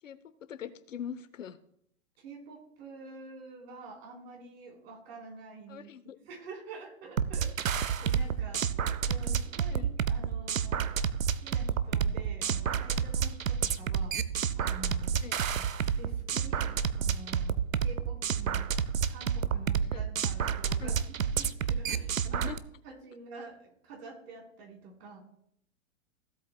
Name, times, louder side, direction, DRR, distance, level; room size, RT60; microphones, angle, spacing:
voice 1, 0.5-1.6 5.7-6.2 9.7-9.9 15.2-15.4 19.9-20.0 20.8-21.0 22.3-22.6, left 8 dB, 75° left, 12 dB, 0.9 m, -42 dB
voice 2, 2.2-5.9 6.3-8.6 9.1-10.9 11.4-14.1 14.6-15.1 15.5-18.7 19.1-22.4 22.8-25.2, right 3 dB, 50° right, -1 dB, 4.2 m, -48 dB
sound 1, 7.2-22.6, right 7 dB, 80° right, 0.7 m, -30 dB
16.0 x 8.0 x 2.3 m, 0.71 s
figure-of-eight pair, 110°, 40 cm